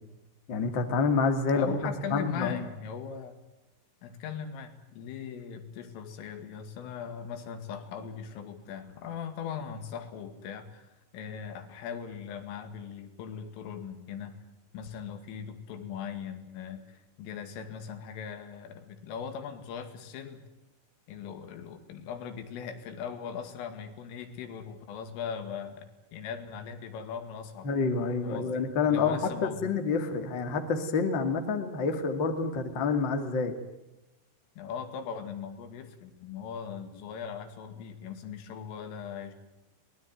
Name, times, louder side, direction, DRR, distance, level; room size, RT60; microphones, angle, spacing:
voice 1, 0.5-2.6 27.6-33.5, left 4 dB, 35° left, 7 dB, 2.1 m, -28 dB
voice 2, 1.5-3.4 4.0-14.4 14.7-20.4 21.1-27.7 28.2-29.6 34.6-39.3, left 7 dB, 90° left, 8 dB, 4.8 m, -39 dB
24.0 x 20.0 x 9.2 m, 0.97 s
omnidirectional pair, 5.7 m